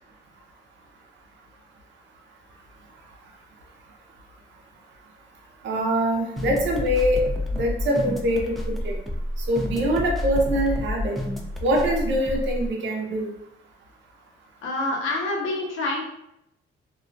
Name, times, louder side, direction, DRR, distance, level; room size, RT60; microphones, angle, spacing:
voice 1, 5.6-7.2 7.5-8.5 8.8-9.0 9.5-11.2 11.6-13.3, equal, 65° right, 0 dB, 0.7 m, -23 dB
sound 1, 6.4-12.7, left 1 dB, ahead, 0.4 m, -29 dB
voice 2, 14.6-16.0, left 2 dB, 80° left, -2 dB, 0.7 m, -27 dB
2.4 x 2.1 x 2.5 m, 0.79 s
cardioid pair, 90°, 20 cm